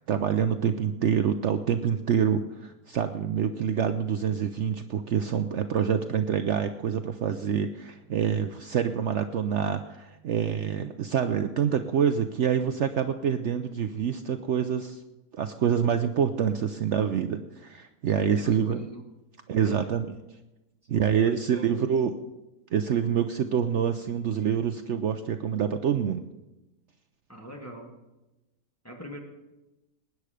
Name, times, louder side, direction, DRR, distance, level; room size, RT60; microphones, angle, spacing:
voice 1, 0.0-15.0 15.3-18.8 19.5-20.1 20.9-22.1 22.7-26.2, right 8 dB, 60° right, 8 dB, 0.8 m, -26 dB
voice 2, 18.3-19.1 19.6-19.9 20.9-21.9 27.3-28.0 28.8-29.2, equal, 10° left, 0 dB, 1.7 m, -43 dB
20.0 x 9.7 x 5.0 m, 1.0 s
omnidirectional pair, 1.6 m